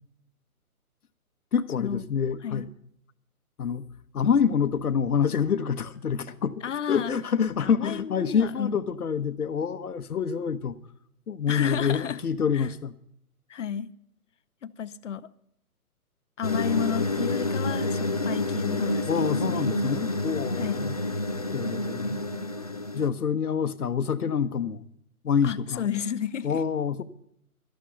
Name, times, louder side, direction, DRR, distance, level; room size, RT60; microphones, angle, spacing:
voice 1, 1.5-2.7 3.6-3.8 4.1-6.6 6.9-10.8 11.3-12.9 19.1-21.0 21.5-22.2 22.9-24.8 25.2-25.9 26.4-27.0, left 7 dB, 80° left, 1.1 m, -26 dB
voice 2, 4.2-4.5 6.6-7.2 7.6-8.7 11.5-12.2 12.5-12.7 13.5-13.9 14.6-15.3 16.4-19.6 20.6-20.9 25.4-26.6, left 8 dB, 55° left, 0.7 m, -32 dB
sound 1, 16.4-23.1, left 2 dB, 30° left, 0.4 m, -28 dB
13.0 x 11.5 x 5.6 m
hypercardioid pair, 155°, 44 cm